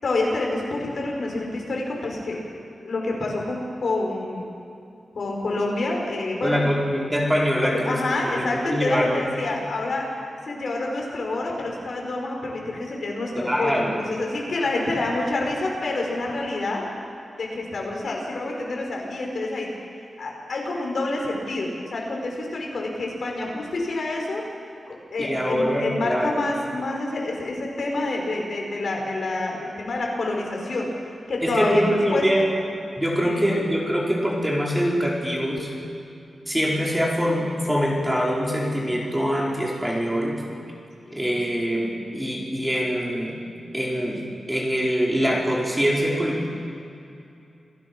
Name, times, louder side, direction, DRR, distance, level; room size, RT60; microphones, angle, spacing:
voice 1, 0.0-2.4 2.8-4.4 5.1-6.6 7.6-10.2 10.5-16.9 17.4-19.7 20.0-24.5 24.9-30.9 31.3-32.5 33.2-33.5 41.1-41.2, left 2 dB, 65° left, -1 dB, 5.5 m, -27 dB
voice 2, 6.4-9.3 13.4-14.0 25.2-26.3 31.4-32.4 32.9-35.7 36.5-40.4 41.1-43.4 43.7-44.2 44.5-46.5, equal, 10° right, -3 dB, 4.7 m, -24 dB
28.5 x 18.0 x 6.2 m, 2.6 s
wide cardioid pair, 105°, 0 cm